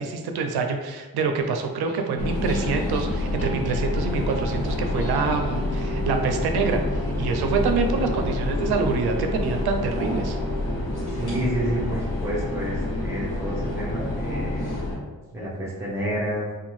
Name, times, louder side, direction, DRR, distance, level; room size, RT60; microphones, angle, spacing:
voice 1, 0.0-10.4, right 4 dB, 85° right, 5 dB, 0.5 m, -26 dB
sound 1, 1.4-12.0, left 2 dB, 35° left, 1.3 m, -43 dB
sound 2, 2.2-15.0, left 1 dB, 80° left, 1.0 m, -28 dB
sound 3, 4.9-5.2 5.5-7.0 7.3-8.8 9.1-10.6 10.9-11.9, right 3 dB, 35° right, 0.8 m, -38 dB
voice 2, 11.1-14.6 15.3-16.5, equal, 5° right, -6 dB, 0.7 m, -29 dB
2.6 x 2.2 x 3.0 m, 1.3 s
cardioid pair, 100°, 37 cm